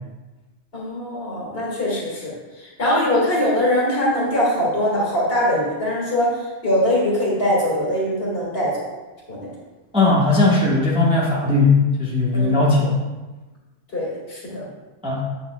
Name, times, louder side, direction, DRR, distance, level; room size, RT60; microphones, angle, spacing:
voice 1, 0.7-2.3 2.8-6.3 6.6-8.7 9.3-9.5 12.3-12.6 13.9-14.7, left 1 dB, 55° left, -5 dB, 2.2 m, -22 dB
voice 2, 9.9-13.0 15.0-15.2, left 3 dB, 5° right, -5 dB, 1.0 m, -18 dB
8.3 x 6.7 x 2.3 m, 1.2 s
omnidirectional pair, 1.2 m